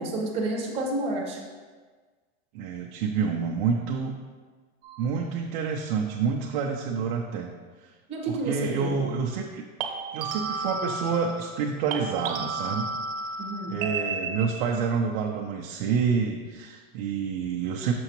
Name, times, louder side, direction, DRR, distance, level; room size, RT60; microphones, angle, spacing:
voice 1, 0.0-1.4 8.1-9.0 13.4-13.8, right 2 dB, 20° right, -2 dB, 1.2 m, -30 dB
voice 2, 2.5-4.1 5.0-7.5 7.8-7.9 8.3-9.6 10.1-12.9 13.7-17.9, right 6 dB, 55° right, 0 dB, 0.7 m, -28 dB
sound 1, 4.8-5.1 9.8-11.6 11.9-14.8, right 3 dB, 70° right, 1.0 m, -33 dB
6.7 x 6.2 x 3.0 m, 1.4 s
supercardioid pair, 165°, 30 cm